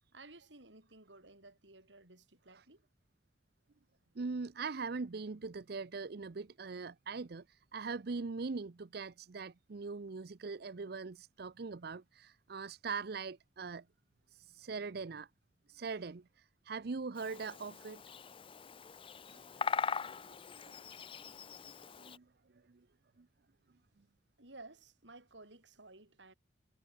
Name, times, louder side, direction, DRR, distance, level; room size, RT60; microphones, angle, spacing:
voice 1, 0.1-2.9 24.4-26.3, right 2 dB, 80° right, 5.9 m, -56 dB
voice 2, 4.2-13.8 14.3-15.3 15.7-18.0 19.3-19.4 20.5-20.7 22.0-22.2 22.7-22.8 23.2-23.3, right 4 dB, 60° right, 0.6 m, -41 dB
Bird vocalization bird call bird song, 17.2-22.2, left 6 dB, 30° left, 0.5 m, -41 dB
head